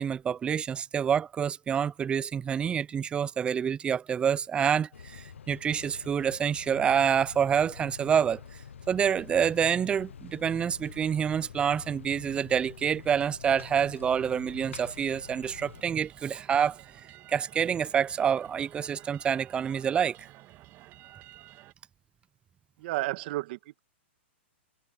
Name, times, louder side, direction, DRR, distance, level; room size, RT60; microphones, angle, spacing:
voice 1, 0.0-8.4 8.9-16.8 17.3-20.3, right 8 dB, 15° right, 0.5 m, -27 dB
Ambience - Train Station - Outside, 4.9-15.8, left 7 dB, 90° left, 0.9 m, -47 dB
sound 1, 14.4-21.7, right 16 dB, 30° right, 1.7 m, -53 dB
voice 2, 22.8-23.8, right 18 dB, 50° right, 2.0 m, -32 dB
hypercardioid pair, 135°, 7 cm